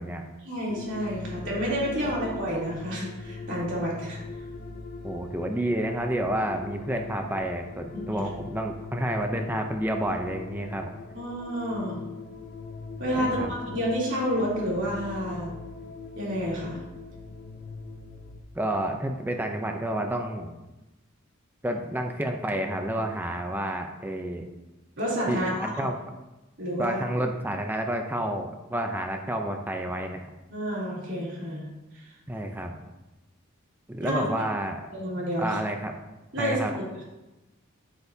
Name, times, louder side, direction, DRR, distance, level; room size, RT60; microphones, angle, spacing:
voice 1, 0.4-4.2 8.1-8.2 11.1-12.0 13.0-15.5 16.2-16.8 25.0-25.9 26.6-27.0 30.5-32.1 34.0-34.3 34.9-35.6 36.3-36.6 37.0-37.1, equal, 60° right, -5 dB, 3.1 m, -29 dB
sound 1, 0.7-18.4, left 3 dB, 50° left, 0.6 m, -41 dB
voice 2, 5.0-10.9 13.1-13.5 18.6-20.5 21.6-24.5 25.3-26.0 26.8-30.2 32.3-32.7 33.9-34.8 35.4-36.0 36.4-36.7, right 1 dB, 10° right, 4 dB, 0.5 m, -30 dB
9.1 x 8.0 x 2.7 m, 1.0 s
head